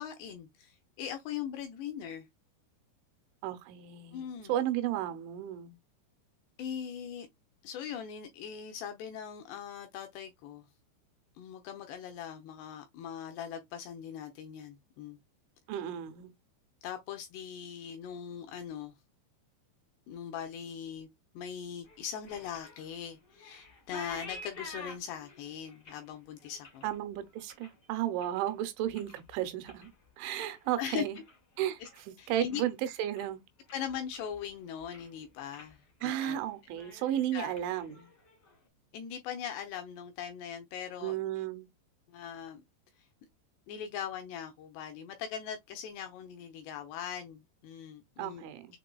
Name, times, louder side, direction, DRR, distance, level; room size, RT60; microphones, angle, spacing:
voice 1, 0.0-2.3 4.1-4.5 6.6-7.3 7.6-10.7 11.4-15.2 16.8-18.9 20.1-21.1 21.3-26.8 30.8-31.0 31.8-31.9 32.2-32.6 33.7-36.4 37.3-37.5 38.9-41.2 42.1-42.6 43.0-43.1 43.7-48.5, left 8 dB, 85° left, 2.5 m, -40 dB
voice 2, 3.4-5.8 15.7-16.3 26.8-29.9 30.2-31.2 31.6-31.8 32.1-33.4 36.0-38.1 41.0-41.7 48.2-48.7, right 12 dB, 85° right, 3.1 m, -34 dB
sound 1, 21.8-28.5 28.8-29.3 29.6-32.1 32.4-32.8 33.2-33.3 33.7-34.5 34.8-35.2 35.5-35.7 36.1-36.4 36.7-38.5, left 3 dB, 65° left, 0.9 m, -50 dB
7.4 x 3.0 x 2.3 m
omnidirectional pair, 5.5 m